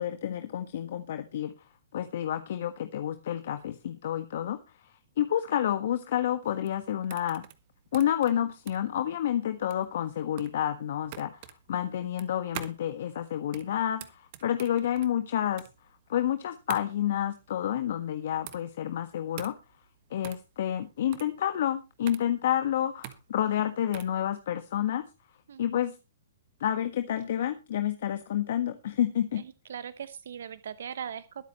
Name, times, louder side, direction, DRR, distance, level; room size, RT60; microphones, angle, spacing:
voice 1, 0.0-1.5 1.9-4.6 5.2-7.4 7.9-11.4 11.7-15.6 16.1-19.5 20.1-25.0 25.6-25.9 26.6-29.4, left 10 dB, 60° left, 8 dB, 1.5 m, -29 dB
sound 1, 6.4-24.2, right 13 dB, 45° right, 1.5 m, -46 dB
voice 2, 29.7-31.5, right 8 dB, 70° right, 14 dB, 0.9 m, -39 dB
22.0 x 8.3 x 3.1 m, 0.29 s
hypercardioid pair, 125°, 0 cm